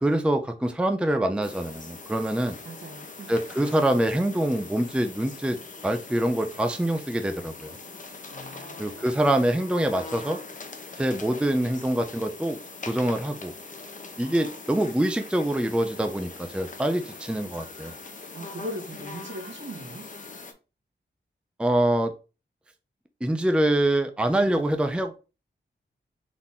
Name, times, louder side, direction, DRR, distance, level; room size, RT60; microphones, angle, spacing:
voice 1, 0.0-2.6 3.3-5.6 5.8-7.7 8.8-10.4 11.0-12.6 12.9-13.5 14.2-18.0 21.6-22.1 23.2-25.2, right 1 dB, 5° right, 0.5 m, -25 dB
sound 1, 1.4-20.5, left 3 dB, 40° left, 0.8 m, -42 dB
voice 2, 2.6-3.3 8.3-8.7 14.1-14.6 18.3-20.1 24.3-24.6, right 1 dB, 70° right, 1.5 m, -39 dB
4.0 x 2.9 x 3.6 m
wide cardioid pair, 75°, 20 cm